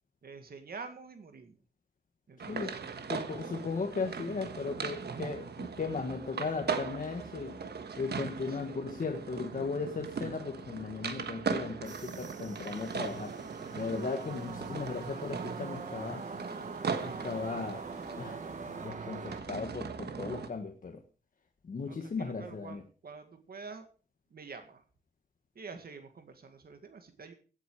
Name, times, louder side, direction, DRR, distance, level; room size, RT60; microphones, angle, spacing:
voice 1, 0.2-1.6 2.3-3.2 8.5-8.8 21.9-23.9 24.3-24.8 25.6-27.3, right 4 dB, 70° right, 7 dB, 1.9 m, -47 dB
voice 2, 2.4-2.7 3.1-7.6 8.0-13.3 13.7-16.3 17.0-17.9 18.2-18.4 18.8-21.0 21.6-22.8, left 4 dB, 55° left, 3 dB, 1.4 m, -37 dB
sound 1, 2.4-20.5, right 5 dB, 90° right, 1.4 m, -39 dB
sound 2, 11.9-19.4, right 5 dB, 50° right, 1.1 m, -44 dB
sound 3, 12.7-18.9, left 1 dB, 15° right, 5.1 m, -53 dB
16.5 x 8.5 x 4.8 m, 0.40 s
wide cardioid pair, 175°, 17 cm